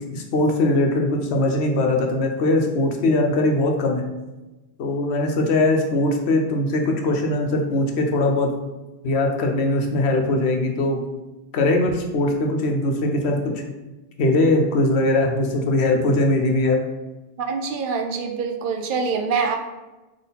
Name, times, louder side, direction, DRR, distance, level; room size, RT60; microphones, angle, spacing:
voice 1, 0.1-4.0 4.8-8.5 9.0-11.0 11.5-13.5 14.2-16.8, left 2 dB, 85° left, 2 dB, 1.0 m, -21 dB
voice 2, 17.4-19.6, right 5 dB, 60° right, 4 dB, 0.7 m, -25 dB
3.9 x 3.2 x 4.0 m, 1.1 s
omnidirectional pair, 1.1 m